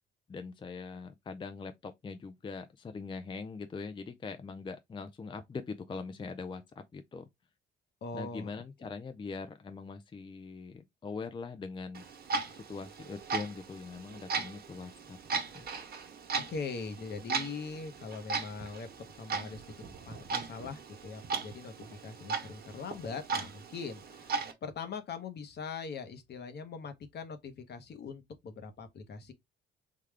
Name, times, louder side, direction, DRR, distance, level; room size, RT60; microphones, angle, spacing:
voice 1, 0.3-7.2 8.1-12.0 12.5-15.2 15.5-15.7, left 4 dB, 25° left, 0.4 m, -42 dB
voice 2, 8.0-8.5 16.5-18.9 19.1-19.6 20.1-29.3, left 5 dB, 55° left, 0.9 m, -41 dB
Clock, 11.9-24.5, right 4 dB, 50° right, 1.0 m, -38 dB
3.6 x 2.3 x 3.3 m
cardioid pair, 90°, 20 cm